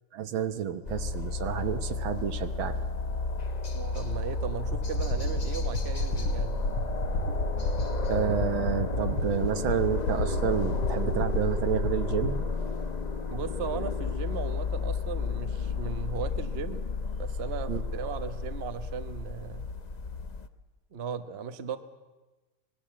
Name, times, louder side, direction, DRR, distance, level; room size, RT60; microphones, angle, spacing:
voice 1, 0.1-2.8 8.1-12.5 17.7-17.8, right 8 dB, 70° right, 10 dB, 1.8 m, -30 dB
sound 1, 0.9-20.5, left 3 dB, 45° left, 0.5 m, -32 dB
voice 2, 3.7-6.6 13.3-16.8 17.2-19.7 20.9-21.8, right 7 dB, 40° right, 9 dB, 1.0 m, -37 dB
sound 2, 4.7-12.3, left 2 dB, 75° left, 3.2 m, -32 dB
25.5 x 20.5 x 7.5 m, 1.2 s
omnidirectional pair, 2.4 m